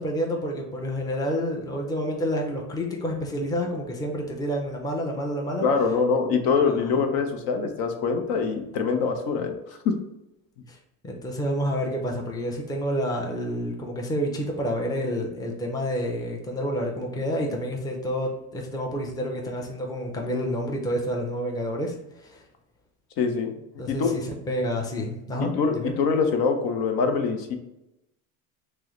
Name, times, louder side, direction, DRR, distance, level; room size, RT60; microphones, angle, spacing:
voice 1, 0.0-5.7 6.7-6.8 10.7-10.8 11.0-22.4 23.8-25.9, equal, 10° left, 0 dB, 0.6 m, -29 dB
voice 2, 5.6-9.9 23.2-23.5 23.9-24.1 25.5-27.6, left 5 dB, 60° left, 5 dB, 0.7 m, -24 dB
6.1 x 2.1 x 3.1 m, 0.90 s
supercardioid pair, 120°, 42 cm